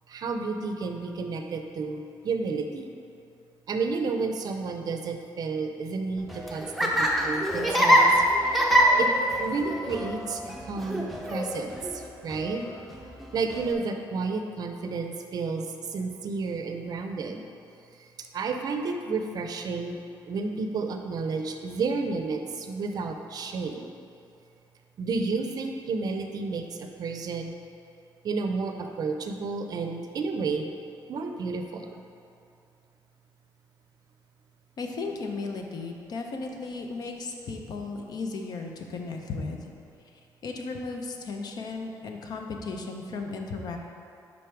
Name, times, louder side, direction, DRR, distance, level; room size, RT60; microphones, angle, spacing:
voice 1, 0.1-2.9 3.7-8.1 8.5-8.6 9.0-9.1 9.4-12.6 13.3-17.5 18.0-18.1 18.3-20.0 20.3-23.9 25.0-27.5 28.2-30.7 31.1-32.0, right 4 dB, 55° right, 5 dB, 0.5 m, -31 dB
Laughter, 6.2-13.7, equal, ahead, 0.6 m, -25 dB
voice 2, 34.8-39.7 40.4-43.8, left 3 dB, 55° left, 3 dB, 0.7 m, -35 dB
5.3 x 4.9 x 4.5 m, 2.5 s
cardioid pair, 125°, 8 cm